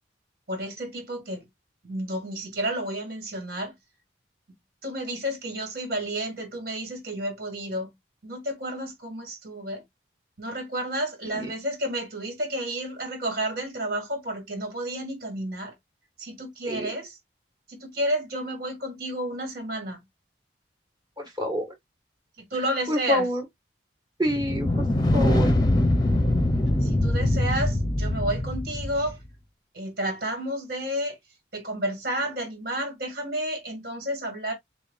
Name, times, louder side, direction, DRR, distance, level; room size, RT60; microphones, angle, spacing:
voice 1, 0.5-1.5 1.8-3.7 4.8-7.9 8.2-9.8 10.4-15.7 16.2-17.2 17.7-20.0 22.5-23.3 26.8-29.2 29.7-31.2 31.5-34.5, right 1 dB, 50° right, 2.1 m, -31 dB
voice 2, 21.2-21.6 22.9-23.4 24.2-24.7 25.1-25.5, equal, 20° right, 1.5 m, -26 dB
sound 1, 24.3-29.1, left 1 dB, 20° left, 0.7 m, -23 dB
6.5 x 2.4 x 2.4 m
head